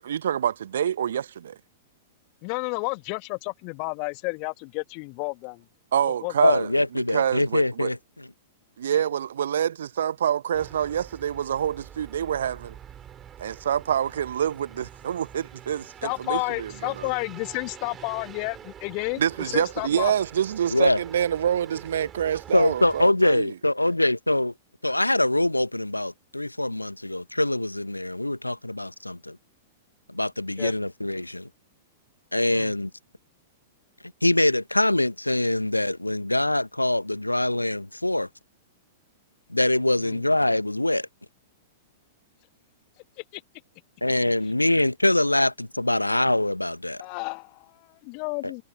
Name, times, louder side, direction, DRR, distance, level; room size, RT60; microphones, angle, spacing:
voice 1, 0.1-1.6 5.9-6.7 7.1-7.9 8.8-12.7 13.4-17.1 19.2-23.5, right 9 dB, 65° right, 1.2 m, -26 dB
voice 2, 2.4-5.6 6.0-6.5 16.0-19.2 19.5-20.1 30.6-30.7 32.5-32.7 40.0-40.2 43.2-43.4 47.0-48.6, left 37 dB, 40° left, 2.0 m, -31 dB
voice 3, 6.4-8.3 8.9-9.0 20.7-21.0 22.5-24.5 24.8-29.4 30.1-31.5 32.3-32.9 34.2-38.3 39.5-41.1 44.0-47.0 48.4-48.5, left 1 dB, 90° left, 1.4 m, -24 dB
sound 1, 10.5-23.1, right 9 dB, 25° right, 6.8 m, -45 dB
figure-of-eight pair, 100°, 0 cm